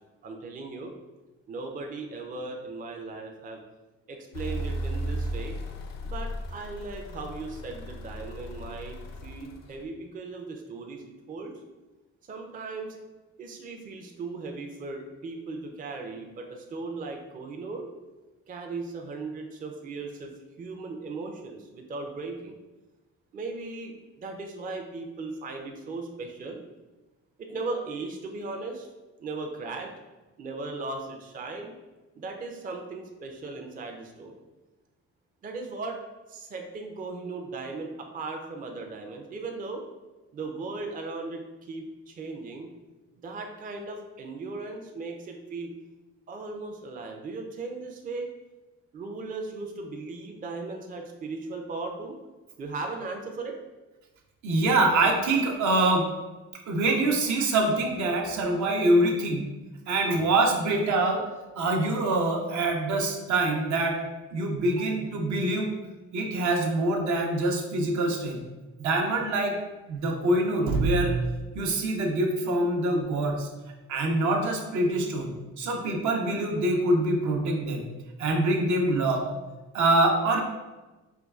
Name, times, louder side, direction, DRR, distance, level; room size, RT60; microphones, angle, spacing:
voice 1, 0.2-0.9 1.5-3.6 4.1-5.6 6.0-11.6 12.3-12.9 13.4-17.9 18.5-20.3 20.6-22.6 23.3-26.6 27.4-28.9 29.2-29.9 30.4-31.7 32.2-34.4 35.4-36.0 36.3-39.8 40.3-42.7 43.2-45.7 46.3-48.3 48.9-52.2 52.6-53.6, right 3 dB, 30° right, 2 dB, 0.4 m, -37 dB
sound 1, 4.3-9.9, right 1 dB, 60° left, 0.5 m, -35 dB
voice 2, 54.4-56.1 56.7-59.5 59.9-61.2 61.5-64.0 64.3-65.7 66.1-68.5 68.8-69.6 69.9-71.2 71.5-73.5 73.9-77.9 78.2-79.2 79.7-80.4, right 2 dB, 70° right, 2 dB, 0.7 m, -25 dB
4.5 x 2.2 x 2.3 m, 1.1 s
cardioid pair, 90°, 30 cm